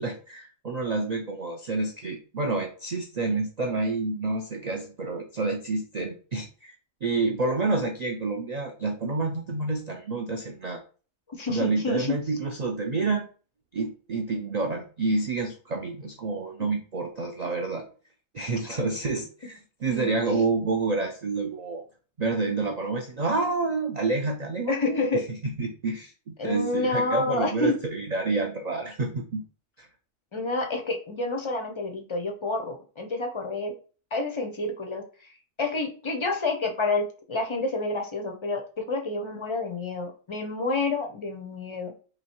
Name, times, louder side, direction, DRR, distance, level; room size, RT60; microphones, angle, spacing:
voice 1, 0.0-6.8 7.0-10.8 11.5-13.3 13.7-17.8 18.3-21.8 22.2-25.0 25.3-29.4 29.8-29.9, right 3 dB, 90° right, 2 dB, 0.3 m, -28 dB
voice 2, 11.3-12.2 19.9-20.1 24.7-25.2 26.4-27.8 30.3-33.7 34.1-41.9, left 3 dB, 50° left, 3 dB, 0.3 m, -29 dB
3.0 x 3.0 x 4.3 m, 0.39 s
omnidirectional pair, 1.4 m